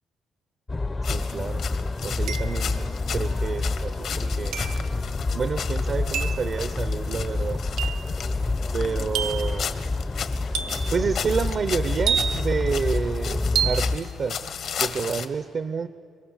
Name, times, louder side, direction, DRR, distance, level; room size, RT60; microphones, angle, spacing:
sound 1, 0.7-14.0, left 3 dB, 25° left, 0.6 m, -28 dB
sound 2, 1.0-15.3, left 7 dB, 70° left, 1.5 m, -35 dB
voice 1, 1.0-1.6 2.0-4.6 5.3-7.6 8.7-9.8 10.9-14.5 14.8-15.9, right 5 dB, 50° right, 12 dB, 0.6 m, -29 dB
sound 3, 1.1-1.2 2.3-2.8 4.5-4.9 6.1-6.5 7.8-8.1 9.1-9.6 10.5-11.0 12.1-12.6 13.6-13.9, right 8 dB, 90° right, 1.0 m, -28 dB
26.5 x 23.0 x 7.1 m, 2.4 s
cardioid pair, 90°, 0 cm